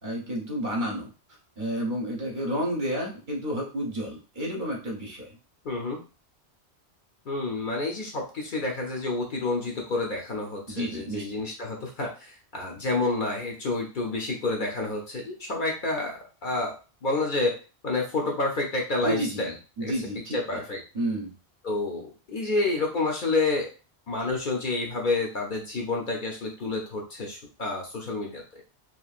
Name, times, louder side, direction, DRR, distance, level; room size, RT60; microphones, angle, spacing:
voice 1, 0.0-1.1 1.6-5.4 10.7-11.4 19.0-19.5 19.8-20.6 20.9-21.3, equal, 50° right, -1 dB, 0.9 m, -31 dB
voice 2, 5.6-6.0 7.3-16.7 17.0-17.6 17.8-19.5 19.8-19.9 20.3-20.8 21.6-23.7 24.1-28.4, left 3 dB, 55° left, 0 dB, 0.7 m, -29 dB
2.9 x 2.5 x 2.4 m, 0.34 s
omnidirectional pair, 1.1 m